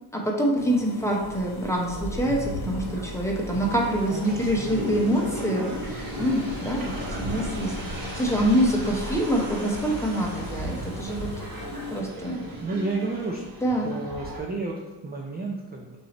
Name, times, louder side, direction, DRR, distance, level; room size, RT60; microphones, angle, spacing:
voice 1, 0.1-11.4 11.9-12.4 13.6-14.0, equal, 5° left, -2 dB, 0.8 m, -26 dB
sound 1, 0.6-12.0, left 4 dB, 70° left, 0.9 m, -42 dB
sound 2, 1.2-14.4, equal, 50° right, 1.2 m, -35 dB
voice 2, 4.1-4.8 6.1-7.1 12.6-13.4 13.8-16.0, right 3 dB, 25° right, -1 dB, 0.4 m, -33 dB
6.2 x 2.7 x 3.0 m, 1.1 s
cardioid pair, 110°, 43 cm